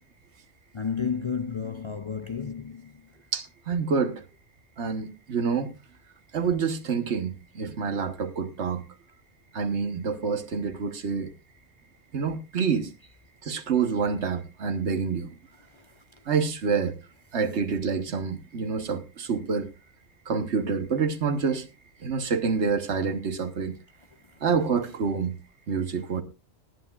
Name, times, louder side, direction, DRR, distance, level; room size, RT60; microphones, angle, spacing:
voice 1, 0.7-2.9, left 6 dB, 35° left, 0.5 m, -31 dB
voice 2, 3.3-4.2 4.8-5.7 6.3-8.9 9.5-11.3 12.1-12.9 13.4-15.3 16.3-17.0 17.3-19.7 20.3-21.7 22.0-23.8 24.4-25.4 25.7-26.2, right 5 dB, 75° right, 1.5 m, -27 dB
19.5 x 10.0 x 2.4 m
omnidirectional pair, 1.2 m